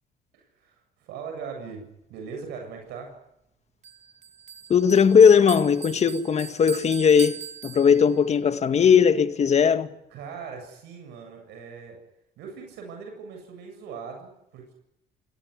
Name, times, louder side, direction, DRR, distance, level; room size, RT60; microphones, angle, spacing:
voice 1, 0.3-3.1 10.1-12.0 12.4-14.7, right 5 dB, 85° right, 7.7 m, -40 dB
Bell, 3.8-8.3, right 7 dB, 40° right, 2.2 m, -41 dB
voice 2, 4.7-9.9, left 6 dB, 40° left, 1.9 m, -18 dB
26.5 x 18.0 x 9.7 m
cardioid pair, 110°, 17 cm